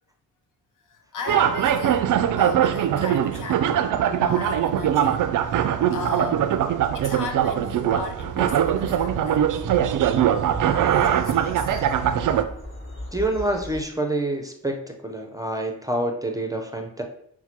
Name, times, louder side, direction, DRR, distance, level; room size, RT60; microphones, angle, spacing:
voice 1, 0.9-6.7 6.9-9.8 10.7-11.9, left 4 dB, 50° left, 0.7 m, -36 dB
sound 1, 1.3-12.4, right 10 dB, 50° right, 0.4 m, -22 dB
sound 2, 8.3-13.8, left 1 dB, 30° left, 1.5 m, -38 dB
voice 2, 13.1-17.0, right 1 dB, 10° right, 0.7 m, -27 dB
5.6 x 2.2 x 2.8 m
supercardioid pair, 45°, 40 cm